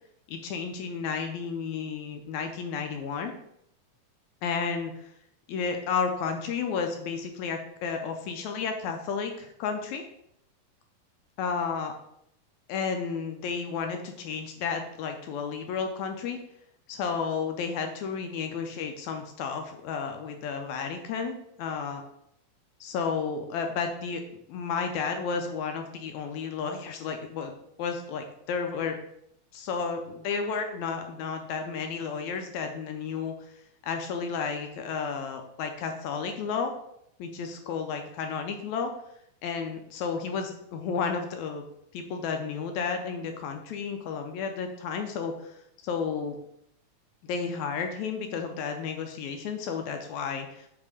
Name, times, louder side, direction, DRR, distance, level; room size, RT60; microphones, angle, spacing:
voice 1, 0.3-3.3 4.4-5.1 5.5-10.0 11.4-11.9 12.7-16.4 16.9-22.0 22.8-24.2 24.5-27.5 27.8-29.0 29.5-33.6 33.8-36.7 37.2-38.9 39.4-41.6 41.9-46.4 47.2-50.7, left 5 dB, 80° left, 5 dB, 1.7 m, -32 dB
7.3 x 2.8 x 4.8 m, 0.75 s
omnidirectional pair, 3.8 m